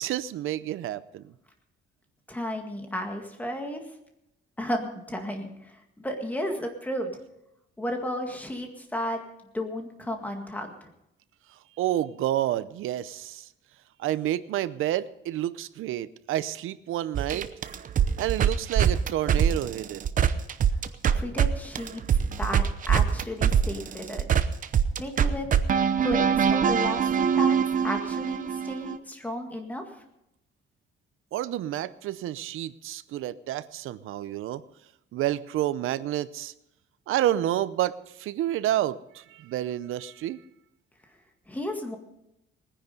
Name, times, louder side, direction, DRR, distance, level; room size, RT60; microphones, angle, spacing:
voice 1, 0.0-1.3 11.8-13.5 14.0-17.5 18.2-20.0 31.3-34.6 35.1-36.5 37.1-40.4, right 13 dB, 85° right, 15 dB, 0.7 m, -29 dB
voice 2, 2.3-3.8 4.6-7.1 7.8-9.2 9.5-10.9 21.1-24.3 25.0-25.5 26.0-27.6 27.8-29.9 41.5-42.0, equal, 10° left, 3 dB, 2.0 m, -33 dB
sound 1, 17.1-21.5 21.7-29.0, right 8 dB, 40° right, 0.8 m, -23 dB
20.0 x 10.0 x 5.3 m, 0.84 s
cardioid pair, 170°, 21 cm